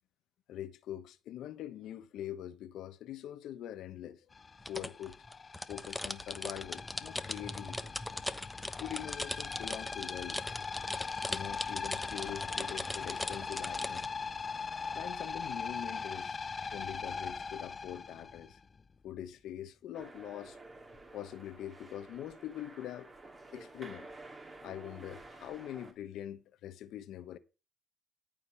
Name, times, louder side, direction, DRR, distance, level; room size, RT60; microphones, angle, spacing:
voice 1, 0.5-4.2 4.7-5.2 5.7-7.9 8.8-10.4 11.3-14.1 14.9-16.4 16.7-18.6 19.0-20.6 21.1-23.1 23.5-24.1 24.6-27.4, left 11 dB, 80° left, 1.1 m, -43 dB
sound 1, 4.3-18.9, left 5 dB, 35° left, 0.5 m, -41 dB
sound 2, 4.6-14.1, left 1 dB, 10° left, 1.0 m, -40 dB
sound 3, 19.9-25.9, right 2 dB, 30° right, 2.8 m, -51 dB
14.0 x 5.3 x 7.1 m
cardioid pair, 90°, 0 cm